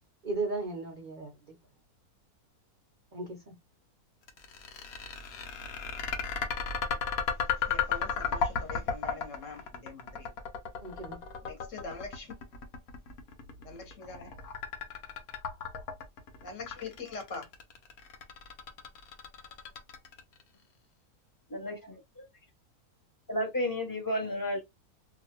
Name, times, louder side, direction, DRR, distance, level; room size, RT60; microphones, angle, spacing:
voice 1, 0.2-1.6 3.1-3.5 10.8-11.2, right 3 dB, 70° right, 0.4 m, -36 dB
sound 1, 4.3-20.4, left 6 dB, 75° left, 1.2 m, -34 dB
voice 2, 7.3-10.3 11.4-12.3 13.6-14.3 16.4-17.5 24.1-24.5, left 4 dB, 60° left, 1.3 m, -44 dB
voice 3, 21.5-22.2 23.3-24.6, left 1 dB, 20° left, 0.6 m, -32 dB
2.8 x 2.4 x 2.8 m
omnidirectional pair, 1.6 m